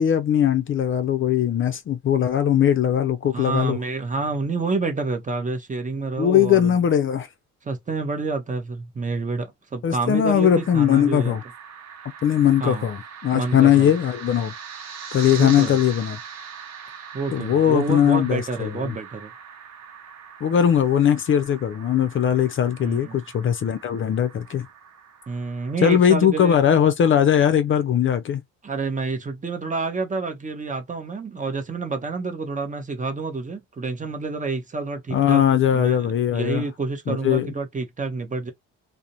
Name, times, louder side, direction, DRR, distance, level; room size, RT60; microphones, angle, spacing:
voice 1, 0.0-3.8 6.2-7.3 9.8-11.4 12.2-14.5 15.1-16.2 17.3-18.9 20.4-24.7 25.8-28.4 35.1-36.6 37.1-37.5, left 9 dB, 45° left, 0.4 m, -20 dB
voice 2, 3.3-6.8 7.6-11.4 12.6-12.9 13.3-13.9 15.4-15.8 17.1-19.3 22.8-23.2 25.3-26.6 28.6-35.4 35.7-38.5, right 3 dB, 25° right, 0.7 m, -28 dB
sound 1, 10.4-25.8, right 7 dB, 60° right, 0.7 m, -41 dB
2.4 x 2.0 x 2.8 m
cardioid pair, 90°, 30 cm